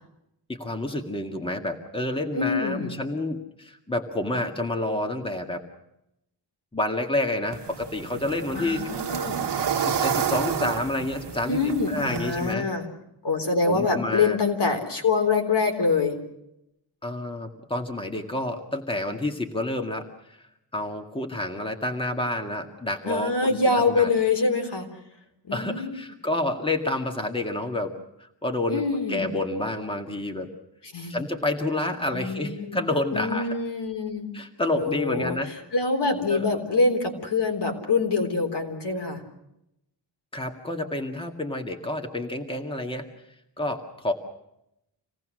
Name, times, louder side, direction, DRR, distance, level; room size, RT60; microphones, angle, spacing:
voice 1, 0.5-5.6 6.7-8.8 9.8-12.7 13.7-14.4 17.0-20.5 20.7-23.6 23.9-24.1 25.5-27.9 28.2-30.5 31.1-33.5 34.3-35.5 36.3-36.5 40.3-43.1 43.6-44.1, left 1 dB, 10° left, 4 dB, 2.0 m, -29 dB
voice 2, 2.3-2.9 8.5-9.4 11.5-12.9 13.2-16.2 23.1-24.9 25.4-26.0 28.7-29.3 30.9-31.2 32.1-32.8 33.1-34.3 34.7-35.4 35.7-39.2, left 4 dB, 70° left, 4 dB, 3.8 m, -25 dB
sound 1, 7.5-12.5, right 7 dB, 70° right, 1.2 m, -29 dB
27.0 x 18.0 x 6.4 m, 0.82 s
wide cardioid pair, 115°, 43 cm